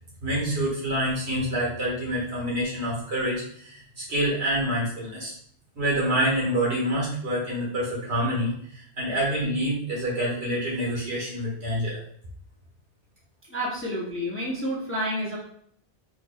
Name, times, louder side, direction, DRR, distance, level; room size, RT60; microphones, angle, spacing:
voice 1, 0.2-5.3 5.8-12.0, right 1 dB, 75° right, -6 dB, 1.9 m, -27 dB
voice 2, 13.5-15.4, equal, 15° left, -5 dB, 0.6 m, -29 dB
4.8 x 2.9 x 2.3 m, 0.65 s
omnidirectional pair, 1.1 m